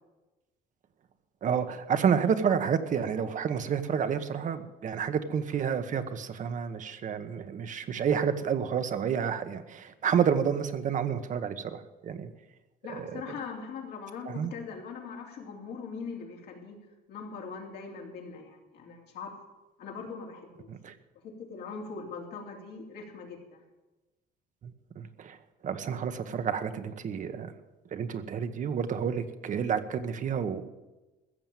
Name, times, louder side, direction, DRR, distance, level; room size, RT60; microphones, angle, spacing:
voice 1, 1.4-12.3 12.9-13.2 14.3-14.5 20.7-20.9 24.6-25.4 25.6-27.5 27.9-30.6, right 7 dB, 50° right, 9 dB, 1.1 m, -30 dB
voice 2, 12.8-16.8 17.1-19.3 19.8-20.7 21.2-23.6, left 5 dB, 75° left, 0 dB, 3.3 m, -41 dB
15.0 x 7.0 x 9.0 m, 1.1 s
cardioid pair, 110°, 17 cm